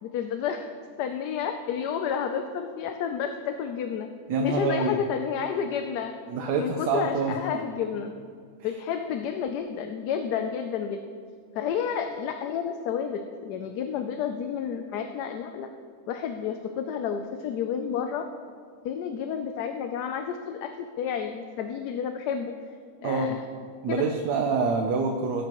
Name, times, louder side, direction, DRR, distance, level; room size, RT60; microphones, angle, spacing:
voice 1, 0.0-0.7 1.0-4.1 4.4-6.1 6.6-8.1 8.6-11.0 11.5-15.7 16.1-18.3 18.8-22.5 23.0-23.4 23.9-24.1, left 7 dB, 90° left, 6 dB, 1.2 m, -30 dB
voice 2, 4.3-5.0 6.3-7.4 23.0-23.4 23.8-25.4, right 4 dB, 90° right, 3 dB, 1.3 m, -26 dB
18.0 x 8.2 x 3.0 m, 2.1 s
omnidirectional pair, 1.7 m